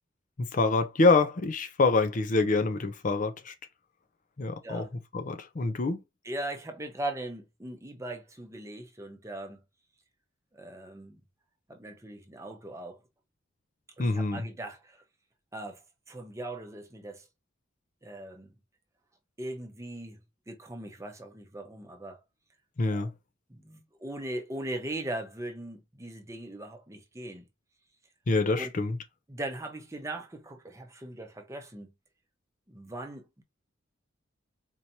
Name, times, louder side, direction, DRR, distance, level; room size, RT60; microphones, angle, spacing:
voice 1, 0.5-3.5 4.4-4.8 5.1-6.0 14.0-14.4 22.8-23.1 28.3-29.0, left 3 dB, 40° left, 0.5 m, -26 dB
voice 2, 6.2-9.6 10.5-11.2 11.7-13.0 14.0-15.0 15.5-17.3 18.0-18.5 19.4-20.2 20.5-22.2 22.9-23.1 23.5-27.5 28.6-28.7 29.3-31.9 32.7-33.4, right 1 dB, 15° right, 0.8 m, -39 dB
4.5 x 2.8 x 2.8 m
head